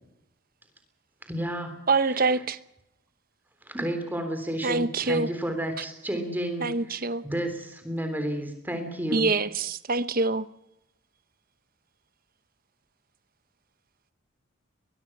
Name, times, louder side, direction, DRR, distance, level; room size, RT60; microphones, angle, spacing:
voice 1, 1.3-1.8 2.1-2.4 3.7-9.3, right 1 dB, 10° right, 3.5 m, -32 dB
voice 2, 1.9-2.6 4.6-5.3 6.6-7.2 9.1-10.4, right 3 dB, 45° right, 0.9 m, -25 dB
22.5 x 22.0 x 6.1 m
head